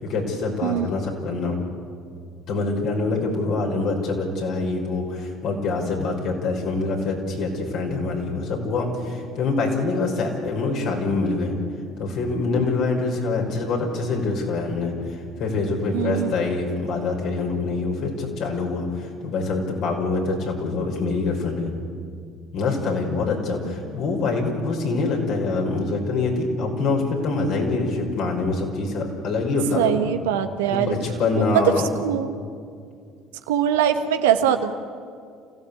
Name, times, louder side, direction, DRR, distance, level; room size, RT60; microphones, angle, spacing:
voice 1, 0.0-1.6 2.5-11.6 12.0-21.7 22.5-30.1 30.7-31.9, left 3 dB, 60° left, 1 dB, 5.6 m, -25 dB
voice 2, 15.9-16.3 29.8-30.9 31.4-31.6 32.0-32.3 33.5-34.7, right 9 dB, 80° right, 7 dB, 1.4 m, -22 dB
28.5 x 16.0 x 8.6 m, 2.2 s
hypercardioid pair, 60°, 0 cm